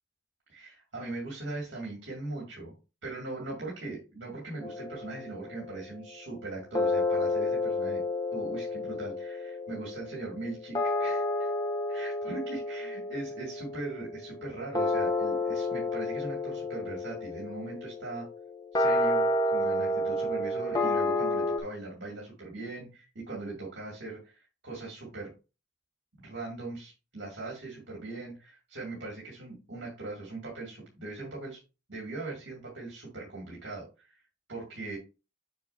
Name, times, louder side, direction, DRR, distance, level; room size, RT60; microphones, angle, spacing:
voice 1, 0.5-2.7 3.0-8.0 8.3-11.5 11.9-18.2 18.7-25.3 26.2-31.6 31.9-34.2 34.5-35.0, right 3 dB, 70° right, -3 dB, 2.5 m, -40 dB
sound 1, 4.6-6.0 6.7-21.6, left 2 dB, 20° left, 0.9 m, -30 dB
6.8 x 6.5 x 2.8 m, 0.31 s
head